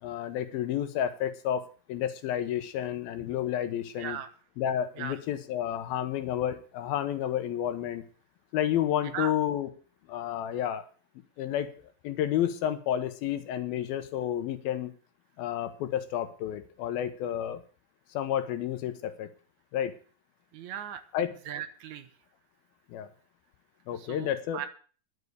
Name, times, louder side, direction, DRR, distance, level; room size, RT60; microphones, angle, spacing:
voice 1, 0.0-4.2 4.6-8.0 8.5-9.7 10.1-10.8 11.4-11.7 12.0-14.9 15.4-17.6 18.1-19.3 19.7-20.0 21.1-21.4 22.9-23.1 23.9-24.6, left 10 dB, 80° left, 10 dB, 2.9 m, -30 dB
voice 2, 4.0-4.3 5.0-5.2 9.1-9.3 20.5-21.0 21.5-22.1 24.0-24.7, right 9 dB, 70° right, 10 dB, 1.9 m, -37 dB
11.0 x 7.6 x 8.0 m, 0.40 s
omnidirectional pair, 4.3 m